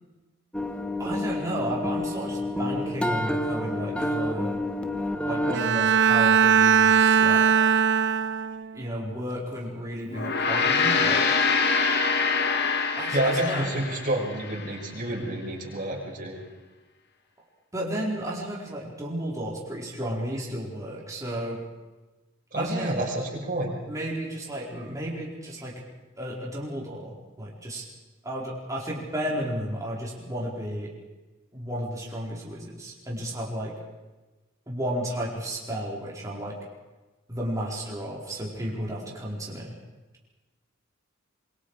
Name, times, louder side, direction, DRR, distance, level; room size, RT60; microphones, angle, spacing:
sound 1, 0.5-5.6, left 1 dB, 5° left, 1.3 m, -29 dB
voice 1, 1.0-4.5 5.3-7.4 8.7-11.3 13.0-13.7 17.7-21.6 22.6-23.0 23.9-25.8 26.2-27.8 28.2-30.9 31.5-33.7 34.7-36.6 37.3-39.7, equal, 15° right, -4 dB, 4.5 m, -33 dB
Bowed string instrument, 5.5-8.7, right 7 dB, 60° right, 0.6 m, -20 dB
Gong, 10.1-14.7, left 5 dB, 55° left, 2.0 m, -25 dB
voice 2, 13.1-16.3 22.5-23.8, right 1 dB, 40° right, -1 dB, 6.1 m, -29 dB
27.0 x 23.5 x 4.9 m, 1.2 s
head